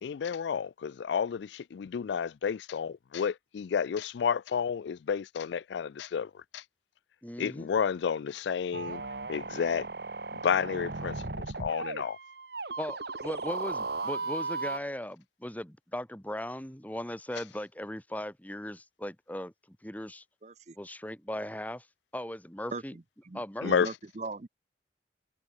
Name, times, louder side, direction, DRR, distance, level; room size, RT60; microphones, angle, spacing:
voice 1, 0.0-6.6 7.4-9.0 9.3-9.9 10.3-12.2 23.6-23.9, left 7 dB, 90° left, 0.4 m, -31 dB
voice 2, 7.2-7.7 12.8-20.2 20.8-21.9 22.1-22.9 23.3-23.7, left 1 dB, 10° left, 1.9 m, -38 dB
sound 1, 8.7-14.8, right 3 dB, 70° right, 2.0 m, -36 dB
voice 3, 20.4-20.8 22.7-24.5, right 3 dB, 40° right, 0.7 m, -40 dB
head